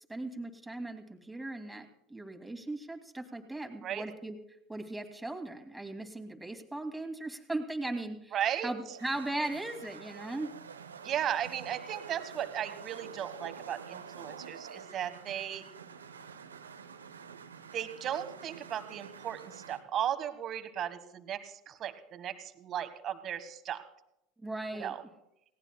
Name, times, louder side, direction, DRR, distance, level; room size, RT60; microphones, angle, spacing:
voice 1, 0.1-4.3 4.7-8.3 8.6-10.5 24.4-24.9, right 2 dB, 5° right, 4 dB, 2.5 m, -38 dB
voice 2, 8.3-8.7 11.0-15.6 17.7-23.8 24.7-25.0, right 10 dB, 45° right, 10 dB, 1.6 m, -36 dB
sound 1, 8.7-19.8, right 6 dB, 85° right, 0.9 m, -47 dB
28.5 x 18.0 x 2.3 m, 0.81 s
figure-of-eight pair, 75°, 0 cm